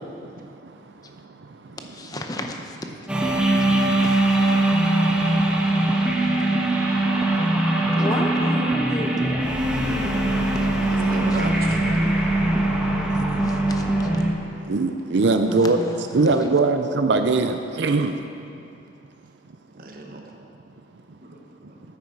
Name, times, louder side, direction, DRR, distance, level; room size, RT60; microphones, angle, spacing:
voice 1, 0.2-1.8 3.3-4.1 4.5-8.0 10.2-11.1 12.0-13.7 14.2-18.2 20.1-20.5 21.6-21.7, right 3 dB, 70° right, 0.5 m, -26 dB
voice 2, 1.8-2.8 3.8-4.5 8.0-9.5 9.7-10.1 11.3-11.4 13.4-14.1 15.3-16.5, left 1 dB, 20° left, 0.7 m, -33 dB
sound 1, 3.1-14.3, right 1 dB, 5° right, 1.1 m, -21 dB
voice 3, 10.1-10.4 10.8-11.8 19.7-20.4 21.2-21.8, right 1 dB, 50° right, 1.3 m, -35 dB
13.5 x 9.4 x 4.7 m
head